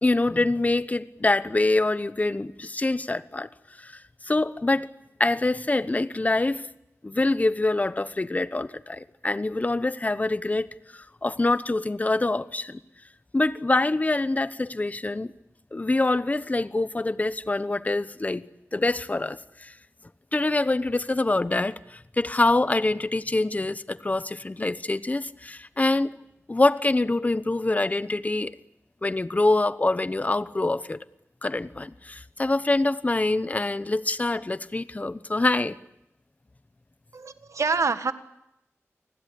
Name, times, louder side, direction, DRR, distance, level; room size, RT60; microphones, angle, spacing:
voice 1, 0.0-3.5 3.8-4.9 5.2-6.7 7.0-10.7 10.9-12.8 13.3-15.3 15.7-18.4 18.7-19.7 20.3-26.2 26.5-28.5 29.0-31.0 31.4-35.8, left 2 dB, 30° left, 15 dB, 1.0 m, -25 dB
voice 2, 37.1-38.1, right 4 dB, 80° right, 11 dB, 1.6 m, -26 dB
29.5 x 20.5 x 8.7 m, 0.84 s
wide cardioid pair, 90°, 5 cm